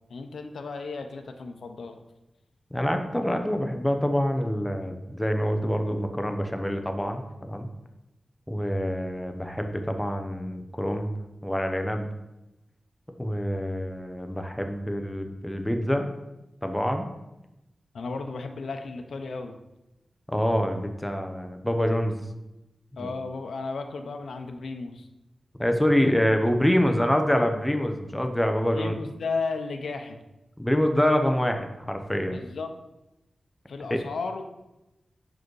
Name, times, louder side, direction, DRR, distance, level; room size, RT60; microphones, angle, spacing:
voice 1, 0.1-2.0 17.9-19.6 23.0-25.1 28.7-30.2 32.3-32.7 33.7-34.5, left 4 dB, 85° left, 6 dB, 0.7 m, -34 dB
voice 2, 2.7-7.7 8.5-11.1 11.4-12.1 13.2-16.1 16.6-17.1 20.3-22.2 23.0-23.1 25.6-28.9 30.6-32.4 33.9-34.0, equal, 5° left, 5 dB, 0.8 m, -26 dB
6.3 x 4.9 x 4.7 m, 0.94 s
wide cardioid pair, 95°, 0 cm